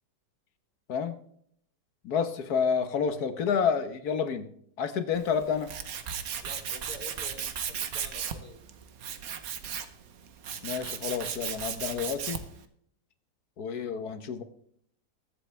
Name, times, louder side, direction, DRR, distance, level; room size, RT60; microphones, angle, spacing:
voice 1, 2.0-4.5 4.8-5.7 10.6-12.4 13.6-14.4, left 6 dB, 65° left, 9 dB, 1.6 m, -29 dB
Tools, 5.1-12.6, right 8 dB, 60° right, 1.4 m, -36 dB
voice 2, 6.4-8.6, left 1 dB, 30° right, -1 dB, 3.4 m, -48 dB
21.5 x 7.8 x 3.3 m, 0.66 s
omnidirectional pair, 1.8 m